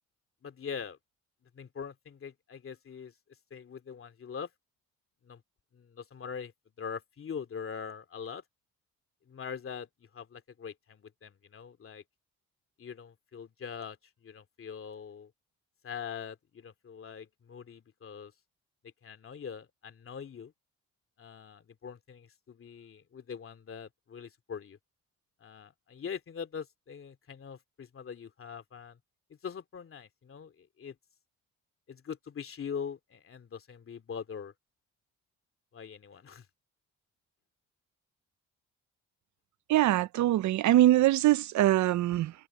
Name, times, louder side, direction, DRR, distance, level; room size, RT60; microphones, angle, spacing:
voice 1, 0.4-1.0 1.5-3.1 3.5-4.5 5.2-5.4 5.7-6.5 6.8-8.4 9.3-12.0 12.8-15.3 15.8-18.3 19.0-20.5 21.2-24.8 25.4-29.0 29.3-31.0 31.9-34.5 35.7-36.5, left 7 dB, 45° left, 2.5 m, -42 dB
voice 2, 39.7-42.3, right 14 dB, 70° right, 0.6 m, -23 dB
cardioid pair, 90°, 30 cm